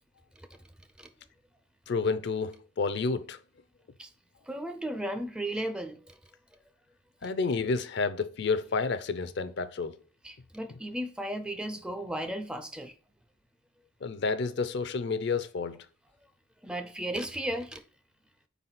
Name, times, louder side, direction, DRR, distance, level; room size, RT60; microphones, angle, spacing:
voice 1, 1.9-3.4 7.2-10.0 14.0-15.8, left 4 dB, 55° left, 0.5 m, -30 dB
voice 2, 4.5-6.2 10.2-12.9 16.6-17.8, right 1 dB, 5° right, 0.4 m, -35 dB
4.7 x 4.0 x 5.7 m
head